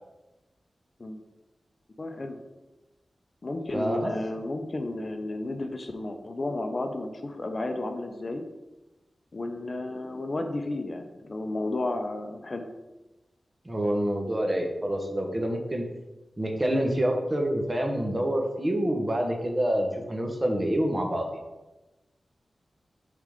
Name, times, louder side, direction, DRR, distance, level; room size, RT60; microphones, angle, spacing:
voice 1, 2.0-2.4 3.4-8.4 9.3-12.7, left 2 dB, 40° left, 5 dB, 0.6 m, -32 dB
voice 2, 3.7-4.1 13.6-15.8 16.4-21.3, right 1 dB, 25° right, 2 dB, 1.1 m, -27 dB
6.9 x 3.8 x 5.0 m, 1.1 s
wide cardioid pair, 110°, 0 cm